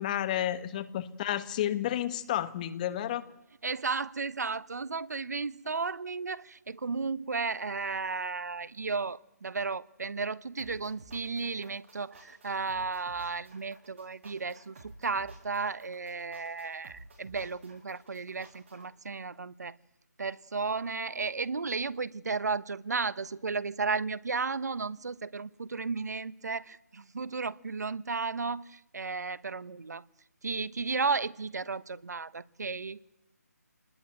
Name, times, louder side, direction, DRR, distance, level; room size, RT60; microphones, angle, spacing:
voice 1, 0.0-3.2, left 12 dB, 25° left, 1.5 m, -31 dB
voice 2, 3.6-19.8 20.2-30.0 30.4-33.0, right 4 dB, 75° right, 1.1 m, -34 dB
sound 1, 10.6-18.9, right 2 dB, 45° right, 7.8 m, -53 dB
27.5 x 20.0 x 9.1 m
figure-of-eight pair, 155°, 9 cm